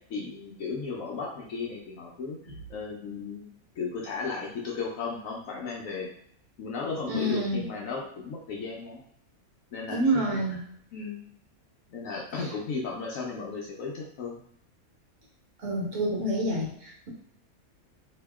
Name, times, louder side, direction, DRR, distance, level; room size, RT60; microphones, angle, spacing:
voice 1, 0.1-3.5 3.8-6.1 6.6-9.0 9.7-10.6 10.9-11.2 11.9-14.4 16.0-16.1, left 4 dB, 70° left, -2 dB, 1.0 m, -35 dB
voice 2, 7.1-7.6 9.9-10.6 15.6-16.7, right 1 dB, 60° right, -4 dB, 1.5 m, -27 dB
2.8 x 2.8 x 3.4 m, 0.68 s
omnidirectional pair, 1.5 m